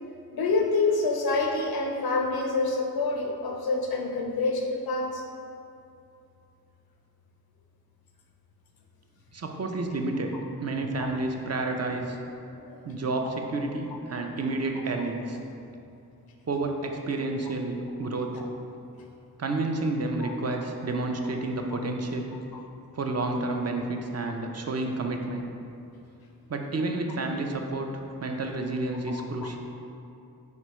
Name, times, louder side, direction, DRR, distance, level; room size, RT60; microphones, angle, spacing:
voice 1, 0.3-5.2 12.5-12.8 13.2-13.3 18.4-18.5 20.2-20.3 29.1-29.2 29.4-29.5, left 3 dB, 85° left, 1 dB, 0.5 m, -27 dB
voice 2, 9.3-12.2 12.8-15.4 16.5-18.3 19.4-22.3 22.9-25.5 26.5-27.9 28.2-29.6, right 2 dB, 45° right, 3 dB, 0.4 m, -30 dB
4.2 x 3.3 x 3.0 m, 2.7 s
wide cardioid pair, 55°, 35 cm